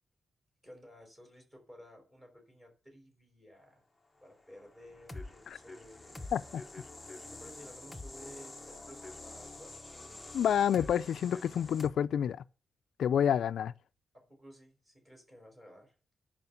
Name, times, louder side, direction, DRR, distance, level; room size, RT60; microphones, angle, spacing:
voice 1, 0.6-3.8 4.2-6.2 7.2-9.8 14.1-15.9, equal, 15° right, 4.9 m, -54 dB
sound 1, 4.5-11.9, left 2 dB, 10° left, 0.9 m, -47 dB
voice 2, 6.3-6.6 10.3-12.4 13.0-13.7, left 9 dB, 75° left, 0.4 m, -29 dB
11.0 x 5.0 x 6.9 m
wide cardioid pair, 180°, 0 cm